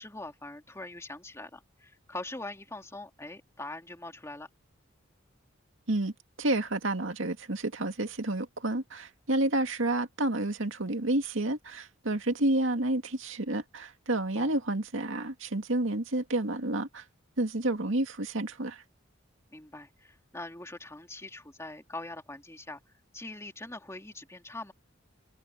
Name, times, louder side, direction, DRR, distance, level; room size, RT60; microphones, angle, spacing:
voice 1, 0.0-4.5 14.4-14.6 19.5-24.7, left 2 dB, 15° left, 2.9 m, -43 dB
voice 2, 6.4-17.0 17.4-18.8, right 1 dB, 75° right, 2.1 m, -30 dB
head